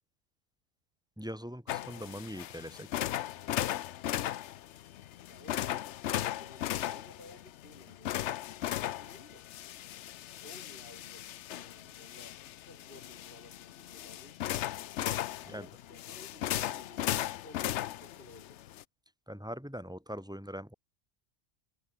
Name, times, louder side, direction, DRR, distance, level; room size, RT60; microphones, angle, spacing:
voice 1, 1.2-2.9 15.4-15.7 19.3-20.7, equal, 5° right, 3.9 m, -42 dB
sound 1, 1.7-18.8, left 12 dB, 70° left, 0.9 m, -37 dB
voice 2, 5.3-9.5 10.4-12.4 12.7-14.4 15.4-18.6, left 1 dB, 45° left, 5.9 m, -55 dB
omnidirectional pair, 1.3 m